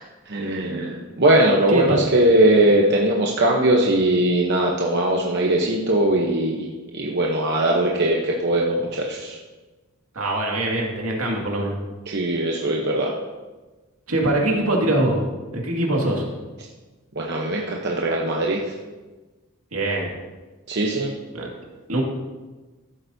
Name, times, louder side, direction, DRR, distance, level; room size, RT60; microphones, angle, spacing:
voice 1, 0.3-6.7 6.9-9.4 12.1-13.1 17.1-18.7 20.7-21.1, right 1 dB, 50° right, -2 dB, 0.9 m, -20 dB
voice 2, 1.7-2.0 10.1-11.8 14.1-15.3 15.5-16.2 19.7-20.1 21.3-21.5 21.9-22.0, right 1 dB, 80° right, -1 dB, 2.2 m, -22 dB
14.5 x 8.0 x 2.7 m, 1.2 s
head